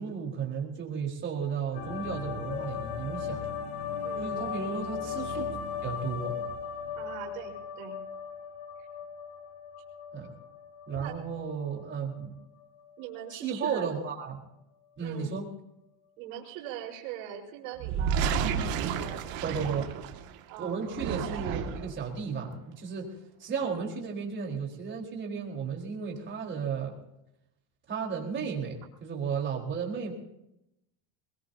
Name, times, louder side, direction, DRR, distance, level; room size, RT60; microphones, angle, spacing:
voice 1, 0.0-3.4 4.2-5.5 5.8-6.4 10.1-10.3 10.9-12.3 13.3-14.4 15.0-15.5 19.4-19.9 20.6-27.0 27.9-30.1, right 6 dB, 30° right, 0 dB, 4.4 m, -34 dB
sound 1, 1.7-12.3 12.6-13.3, left 6 dB, 70° left, 3.1 m, -37 dB
voice 2, 4.0-4.5 6.9-8.0 11.0-11.2 13.0-13.9 15.0-15.4 16.2-18.3 18.5-19.2 19.7-20.0 20.5-20.8, right 9 dB, 75° right, -3 dB, 4.6 m, -41 dB
sound 2, 17.8-20.3 20.8-22.0, right 7 dB, 60° right, 2.1 m, -31 dB
22.5 x 20.5 x 2.8 m, 0.84 s
supercardioid pair, 135°, 41 cm